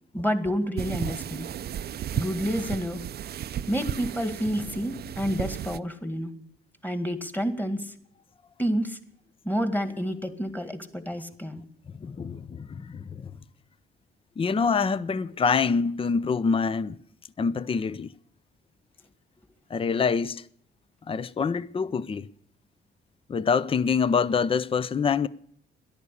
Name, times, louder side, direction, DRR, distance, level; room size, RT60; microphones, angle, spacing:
voice 1, 0.1-1.5 2.1-3.0 3.7-6.3 6.8-7.9 8.6-9.0 9.4-11.6, equal, 10° left, 1.9 m, -29 dB
sound 1, 0.8-5.8, right 10 dB, 55° right, 0.5 m, -34 dB
voice 2, 12.0-13.3 14.4-17.0 17.4-18.1 19.7-20.4 21.1-22.3 23.3-25.3, left 5 dB, 30° left, 0.6 m, -25 dB
13.5 x 11.0 x 8.4 m
cardioid pair, 90°, 20 cm